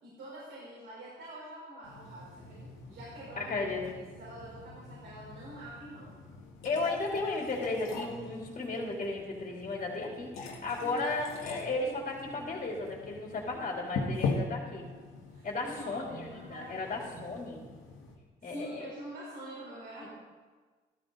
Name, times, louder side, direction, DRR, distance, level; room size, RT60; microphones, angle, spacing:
voice 1, 0.0-3.5 3.9-6.1 6.7-6.8 10.8-11.0 14.0-14.3 14.6-14.9 15.3-16.8 17.1-17.2 18.4-20.1, right 1 dB, 75° right, -7 dB, 4.6 m, -46 dB
sound 1, 1.8-18.1, left 3 dB, 85° left, 2.1 m, -42 dB
voice 2, 3.4-3.8 6.6-14.8 15.4-17.6 18.4-18.9 20.0-20.1, left 3 dB, 40° left, -2 dB, 3.3 m, -34 dB
13.5 x 13.5 x 4.1 m, 1.4 s
cardioid pair, 90°, 20 cm